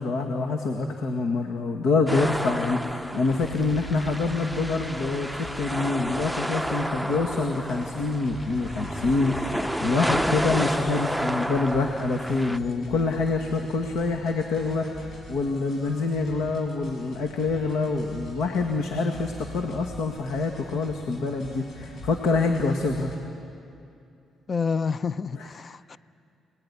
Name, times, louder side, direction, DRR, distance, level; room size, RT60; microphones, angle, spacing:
voice 1, 0.0-23.1 25.4-25.5, left 3 dB, 85° left, 3 dB, 2.0 m, -26 dB
sound 1, 2.1-12.6, equal, ahead, 0.7 m, -31 dB
sound 2, 3.3-23.2, left 1 dB, 65° left, 7.4 m, -44 dB
voice 2, 24.5-26.0, left 5 dB, 40° left, 15 dB, 0.7 m, -28 dB
28.0 x 20.0 x 9.9 m, 2.6 s
cardioid pair, 90°, 0 cm